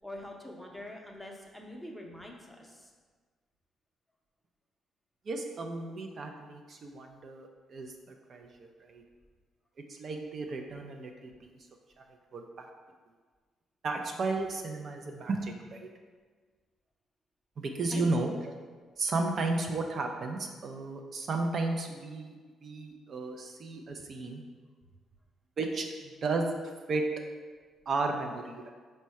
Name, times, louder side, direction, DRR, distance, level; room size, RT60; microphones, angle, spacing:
voice 1, 0.0-2.9 17.9-18.1, left 1 dB, 5° left, 0 dB, 0.6 m, -44 dB
voice 2, 5.3-7.9 8.3-9.0 9.9-11.3 12.0-12.1 12.3-12.7 13.8-15.9 17.6-18.6 19.0-22.3 22.6-24.4 25.6-26.6 26.9-27.0 27.9-28.7, right 3 dB, 50° right, 3 dB, 0.4 m, -33 dB
4.2 x 2.1 x 4.5 m, 1.5 s
cardioid pair, 90°, 0 cm